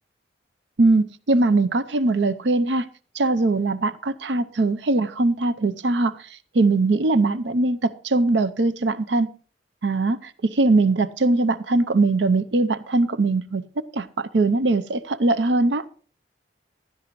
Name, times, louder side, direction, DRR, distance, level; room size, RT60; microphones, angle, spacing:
voice 1, 0.8-2.9 3.1-6.2 6.5-9.3 9.8-13.6 13.9-15.8, right 2 dB, 80° right, 0.6 m, -21 dB
15.5 x 12.0 x 3.1 m
head